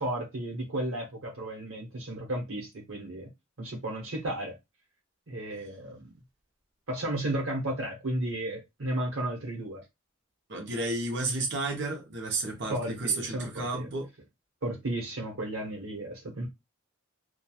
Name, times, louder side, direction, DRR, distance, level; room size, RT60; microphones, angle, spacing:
voice 1, 0.0-3.3 3.6-4.5 5.3-6.1 6.9-9.8 12.7-13.9 14.6-16.5, right 1 dB, 80° right, 1.0 m, -33 dB
voice 2, 10.5-14.1, right 2 dB, 55° right, 0.8 m, -32 dB
3.0 x 2.2 x 2.3 m
head